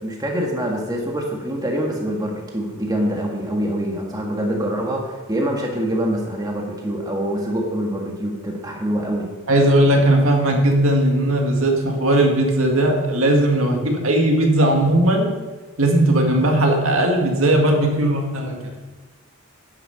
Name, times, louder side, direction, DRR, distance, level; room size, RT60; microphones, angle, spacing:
voice 1, 0.0-9.3, equal, 15° right, 0 dB, 1.7 m, -25 dB
voice 2, 9.5-15.3 15.8-18.6, right 1 dB, 70° right, 2 dB, 1.9 m, -17 dB
10.0 x 9.4 x 5.8 m, 1.2 s
head